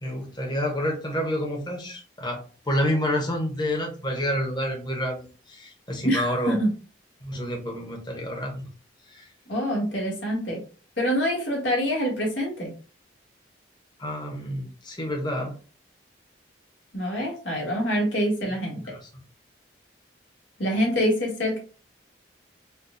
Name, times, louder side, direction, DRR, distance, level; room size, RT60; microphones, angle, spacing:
voice 1, 0.0-6.6 7.2-8.7 9.1-9.2 14.0-15.5, equal, 25° left, -1 dB, 0.9 m, -29 dB
voice 2, 6.0-6.7 9.5-10.6 11.0-12.7 16.9-18.8 20.6-21.6, equal, 85° left, -2 dB, 1.7 m, -25 dB
4.3 x 2.3 x 2.6 m, 0.37 s
head